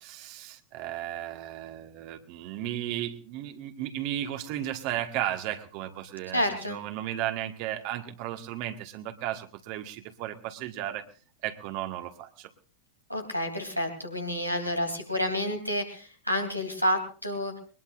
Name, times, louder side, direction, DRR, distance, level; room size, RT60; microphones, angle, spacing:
voice 1, 0.0-11.0 11.4-12.5, right 12 dB, 45° right, 6 dB, 1.5 m, -35 dB
voice 2, 6.3-6.8 13.1-17.6, equal, 90° left, 3 dB, 3.0 m, -29 dB
22.0 x 20.0 x 2.5 m, 0.38 s
figure-of-eight pair, 90°, 0 cm